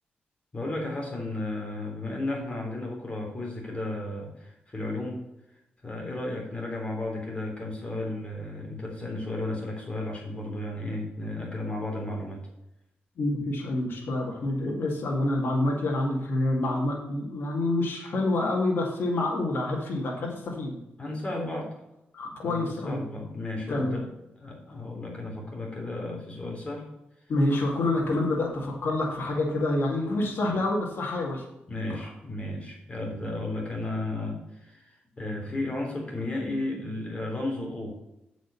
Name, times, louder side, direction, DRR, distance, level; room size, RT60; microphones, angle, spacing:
voice 1, 0.5-5.2 5.8-12.4 21.0-21.7 22.4-24.1 24.4-26.8 30.1-30.5 31.7-37.9, left 2 dB, 30° left, 0 dB, 3.3 m, -34 dB
voice 2, 13.2-20.8 22.1-23.0 23.7-24.0 27.3-31.4, left 2 dB, 70° left, -1 dB, 2.1 m, -27 dB
7.7 x 5.2 x 6.9 m, 0.88 s
cardioid pair, 70°, 4 cm